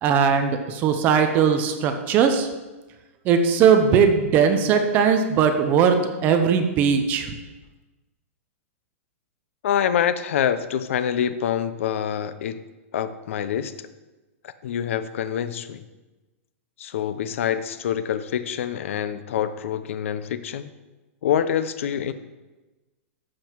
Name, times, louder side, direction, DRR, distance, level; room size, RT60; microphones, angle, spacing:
voice 1, 0.0-2.5 3.2-6.0 6.2-7.3, right 7 dB, 25° right, 6 dB, 0.8 m, -19 dB
voice 2, 9.6-12.6 12.9-13.9 14.4-15.8 16.8-20.7 21.2-22.1, left 9 dB, 65° left, 12 dB, 0.8 m, -26 dB
12.5 x 7.8 x 4.6 m, 1.1 s
supercardioid pair, 170°, 8 cm